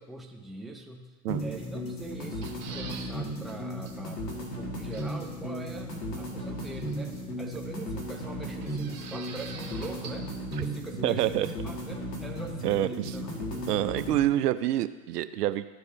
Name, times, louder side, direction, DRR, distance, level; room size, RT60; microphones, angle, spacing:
voice 1, 0.0-1.1 1.4-10.3 10.6-13.3, right 2 dB, ahead, 2 dB, 0.5 m, -42 dB
sound 1, 1.3-14.2, equal, 85° left, 2.0 m, -36 dB
sound 2, 2.2-3.1 3.5-3.6 3.9-4.0 4.9-5.3 6.6-7.2 8.6-10.3 10.5-10.6, right 6 dB, 35° right, 1.4 m, -45 dB
voice 2, 11.0-11.5 12.6-13.1 13.7-15.7, right 13 dB, 75° right, 13 dB, 0.6 m, -27 dB
13.0 x 4.7 x 2.7 m, 1.3 s
hypercardioid pair, 100°, 47 cm